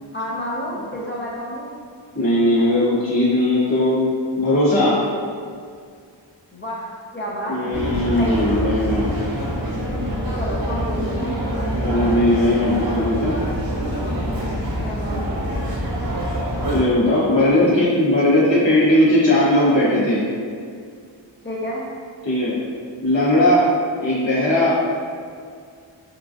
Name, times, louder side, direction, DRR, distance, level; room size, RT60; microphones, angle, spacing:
voice 1, 0.1-1.7 6.5-7.8 8.2-8.5 10.3-11.0 14.8-15.2 17.0-17.5 21.4-21.8, equal, 25° left, -6 dB, 0.5 m, -30 dB
voice 2, 2.1-5.0 7.5-9.1 11.8-13.3 16.7-20.2 22.2-22.6 23.0-23.6 24.0-24.7, left 1 dB, 70° left, -11 dB, 1.3 m, -18 dB
sound 1, 7.7-16.8, equal, 50° right, 0.8 m, -25 dB
3.0 x 2.4 x 2.4 m, 2.2 s
wide cardioid pair, 50°, 46 cm